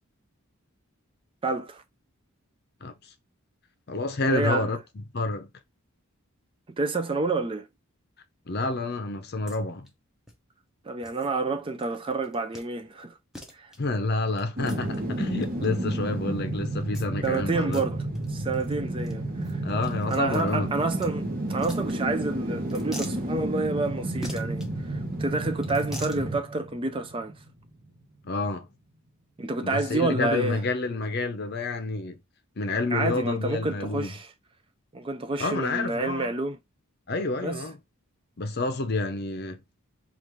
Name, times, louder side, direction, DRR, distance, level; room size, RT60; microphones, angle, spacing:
voice 1, 1.4-1.8 4.3-4.7 6.8-7.7 10.9-13.1 13.5-13.7 17.2-18.0 18.3-19.6 20.1-27.3 29.4-30.6 32.9-34.3 34.9-36.6 37.4-37.6, right 3 dB, 25° right, 0.4 m, -29 dB
voice 2, 3.9-5.5 8.5-9.9 13.8-17.8 19.6-20.7 28.2-28.7 29.6-32.2 32.6-34.1 35.4-36.3 37.1-37.8 38.4-39.6, left 2 dB, 45° left, 0.6 m, -29 dB
sound 1, 9.5-9.6 9.9-10.0 10.3-10.4 11.0-11.3 11.8-12.0 12.2-12.7 13.0-13.1 13.3-13.8 14.4-15.7 16.9-17.4 17.6-17.8 18.2-18.3 18.5-18.7 19.0-19.1 19.4-21.1 21.5-22.3 22.7-23.2 24.2-24.7 25.6-26.2, equal, ahead, 0.8 m, -43 dB
sound 2, 14.6-27.6 28.0-28.1, right 1 dB, 40° right, 1.0 m, -31 dB
5.2 x 2.5 x 3.0 m
head